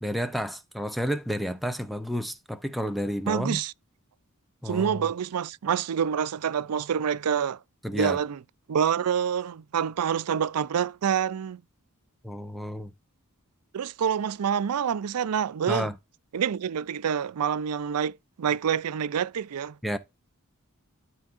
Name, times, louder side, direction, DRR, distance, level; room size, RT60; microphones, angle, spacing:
voice 1, 0.0-3.6 4.6-5.0 7.8-8.2 12.2-12.9 15.7-16.0 19.8-20.0, equal, ahead, 0.6 m, -31 dB
voice 2, 3.3-3.7 4.7-7.6 7.9-8.4 8.7-11.6 13.7-15.9 16.3-19.8, right 7 dB, 90° right, 0.4 m, -27 dB
13.0 x 4.5 x 2.5 m
head